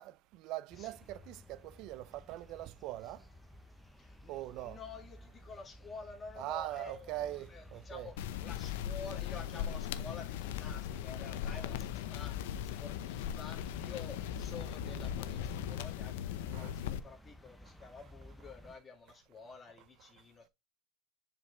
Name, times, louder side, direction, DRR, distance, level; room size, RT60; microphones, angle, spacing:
voice 1, 0.0-3.2 4.3-4.8 6.4-8.1 16.5-16.7, right 15 dB, 55° right, 0.4 m, -42 dB
sound 1, 0.7-18.8, equal, 5° left, 0.8 m, -53 dB
voice 2, 4.0-8.1 8.4-20.5, left 4 dB, 25° left, 1.8 m, -50 dB
sound 2, 8.2-17.0, left 11 dB, 80° left, 0.6 m, -39 dB
7.2 x 5.2 x 3.2 m
supercardioid pair, 115°, 0 cm